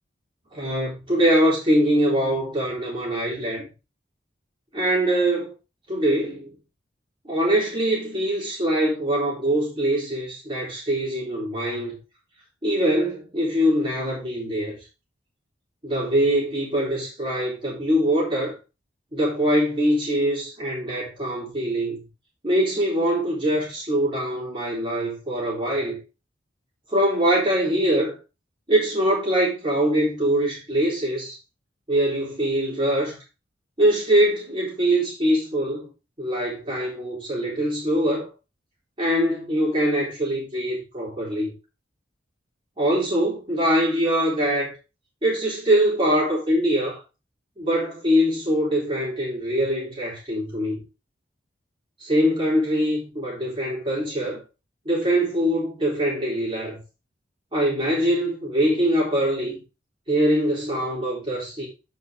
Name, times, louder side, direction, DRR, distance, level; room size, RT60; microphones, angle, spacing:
voice 1, 0.5-3.6 4.7-5.5 5.9-6.5 7.2-12.0 12.6-14.8 15.8-18.5 19.1-22.0 22.4-26.0 26.9-28.1 28.7-31.4 31.9-33.2 33.8-35.9 36.2-38.3 39.0-41.5 42.8-44.7 45.2-47.0 47.6-50.8 52.0-54.4 54.9-56.8 57.5-59.6 60.1-61.7, right 1 dB, 30° right, 3.9 m, -23 dB
8.5 x 5.3 x 3.8 m
head